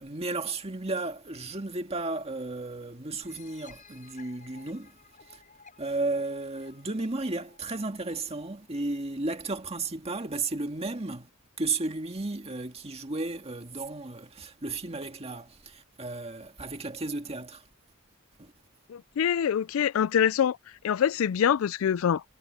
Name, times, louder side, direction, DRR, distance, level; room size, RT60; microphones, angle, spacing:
voice 1, 0.0-4.9 5.3-5.4 5.8-11.3 11.6-17.6 18.4-18.5, right 3 dB, 30° right, 1.9 m, -34 dB
sound 1, 3.2-8.7, left 5 dB, 40° left, 7.3 m, -55 dB
voice 2, 18.9-20.6 20.8-22.2, left 8 dB, 70° left, 0.3 m, -25 dB
head